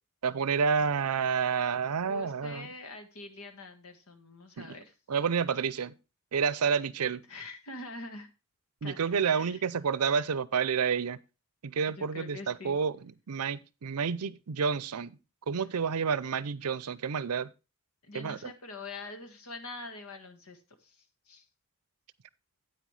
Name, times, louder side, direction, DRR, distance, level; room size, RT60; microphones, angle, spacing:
voice 1, 0.2-2.7 4.6-4.8 5.1-5.9 6.3-7.2 8.8-11.2 11.6-12.9 13.3-15.2 15.5-17.5 18.1-18.5, right 6 dB, 85° right, 0.6 m, -29 dB
voice 2, 2.1-4.9 7.3-8.3 8.8-9.0 9.3-9.7 11.9-12.8 18.0-21.4, left 2 dB, 70° left, 1.6 m, -44 dB
9.2 x 8.9 x 3.2 m
head